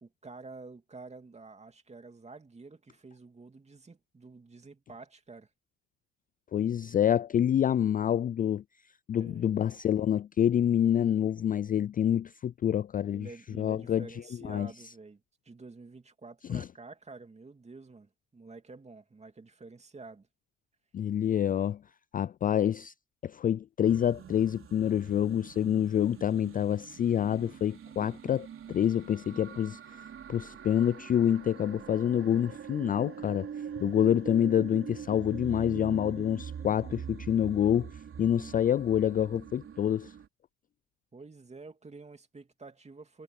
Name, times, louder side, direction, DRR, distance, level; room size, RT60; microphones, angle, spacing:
voice 1, 0.0-5.5 9.2-9.5 13.1-20.3 41.1-43.2, right 3 dB, 20° right, 2.8 m, -49 dB
voice 2, 6.5-8.6 9.1-13.3 13.6-14.1 14.4-14.7 16.5-16.7 20.9-21.8 22.1-22.9 23.2-30.0 30.3-33.5 33.8-40.1, left 10 dB, 30° left, 0.4 m, -27 dB
sound 1, 23.8-40.3, right 8 dB, 45° right, 3.7 m, -44 dB
supercardioid pair, 70°, 29 cm